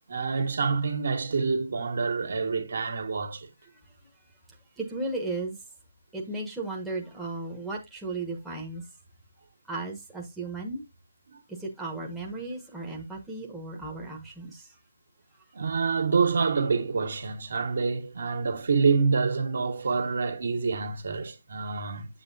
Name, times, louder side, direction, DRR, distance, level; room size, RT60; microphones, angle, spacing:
voice 1, 0.1-3.5 11.3-11.4 15.5-22.1, right 4 dB, 60° right, 1.8 m, -27 dB
voice 2, 4.8-5.6 6.1-8.8 9.7-10.8 11.6-14.7, right 2 dB, 5° right, 1.2 m, -35 dB
7.6 x 7.3 x 2.7 m
figure-of-eight pair, 160°, 0 cm